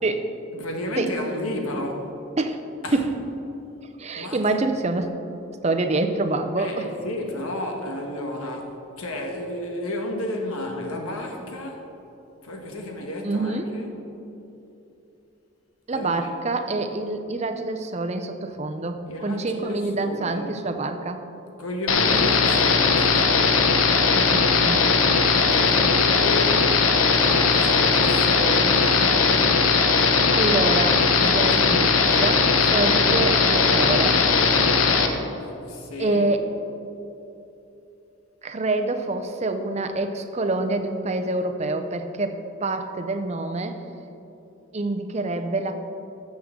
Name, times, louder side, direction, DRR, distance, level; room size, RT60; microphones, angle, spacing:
voice 1, 0.5-2.1 2.8-3.0 4.2-4.4 6.6-11.8 12.4-13.9 15.9-16.3 19.1-20.5 21.6-23.4 24.9-26.8 27.1-29.6 31.4-31.5 32.0-32.3 35.4-36.3, left 1 dB, 90° left, 2 dB, 1.4 m, -32 dB
voice 2, 4.0-5.1 5.6-6.9 13.2-13.8 15.9-21.2 24.0-24.9 30.0-34.2 36.0-36.4 38.4-43.8 44.7-45.7, right 2 dB, 30° right, 7 dB, 0.5 m, -26 dB
sound 1, 21.9-35.1, left 5 dB, 70° left, 0.8 m, -19 dB
13.5 x 7.3 x 3.7 m, 2.9 s
head